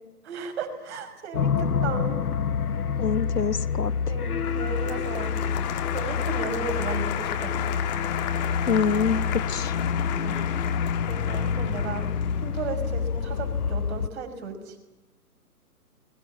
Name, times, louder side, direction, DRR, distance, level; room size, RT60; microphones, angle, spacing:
voice 1, 0.3-2.2 4.0-5.4 5.9-7.7 10.2-10.4 11.1-12.1 12.4-14.8, right 5 dB, 45° right, 5 dB, 5.8 m, -35 dB
sound 1, 1.3-14.1, left 6 dB, 70° left, 1.1 m, -28 dB
voice 2, 3.0-4.2 8.7-9.7, left 6 dB, 90° left, 13 dB, 1.5 m, -26 dB
Applause, 4.4-13.5, left 11 dB, 25° left, 1.6 m, -34 dB
29.0 x 21.5 x 7.3 m, 1.0 s
figure-of-eight pair, 135°, 47 cm